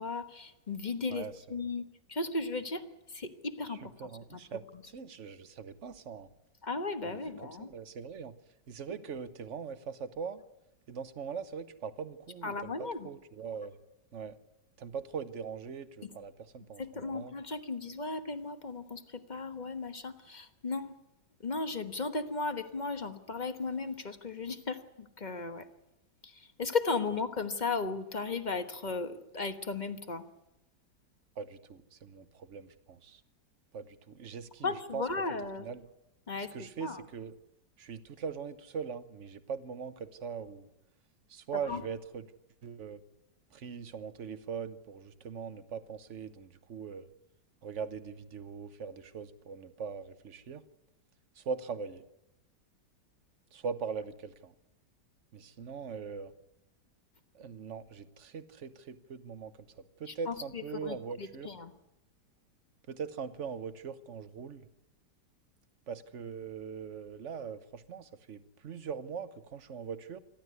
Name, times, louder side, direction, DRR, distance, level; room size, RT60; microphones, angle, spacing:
voice 1, 0.0-1.2 1.5-1.8 2.1-2.8 3.1-3.9 4.3-4.4 6.6-7.7 12.4-13.1 16.8-20.9 21.4-25.6 26.2-26.3 26.6-30.2 34.6-35.6 36.3-36.5 36.8-37.0 41.7-41.8 60.3-61.7, left 3 dB, 30° left, 9 dB, 1.2 m, -35 dB
voice 2, 1.1-1.6 3.6-6.3 7.0-8.4 8.7-10.4 10.9-13.8 14.1-14.4 14.8-17.3 31.4-33.2 33.7-35.1 35.6-35.9 36.5-37.3 37.8-40.7 41.3-42.3 42.6-43.0 43.5-47.1 47.6-50.6 51.3-52.0 53.5-54.5 55.3-56.3 57.3-61.5 62.9-64.7 65.9-70.2, right 6 dB, 50° right, 12 dB, 1.3 m, -41 dB
27.5 x 12.0 x 9.5 m, 0.88 s
omnidirectional pair, 1.9 m